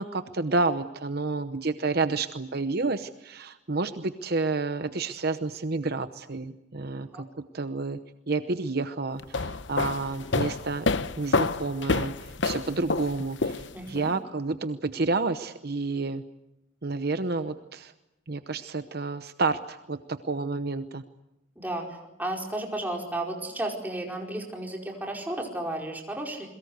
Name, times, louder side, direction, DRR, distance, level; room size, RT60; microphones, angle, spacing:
voice 1, 0.0-8.0 8.3-10.9 11.2-16.2 16.8-17.9 18.3-21.0, right 3 dB, 55° right, 10 dB, 0.9 m, -30 dB
sound 1, 9.2-14.0, left 3 dB, 65° left, 0.9 m, -28 dB
voice 2, 13.7-14.1 21.6-26.5, right 1 dB, 10° right, 1 dB, 4.9 m, -33 dB
28.5 x 22.5 x 8.1 m, 0.91 s
head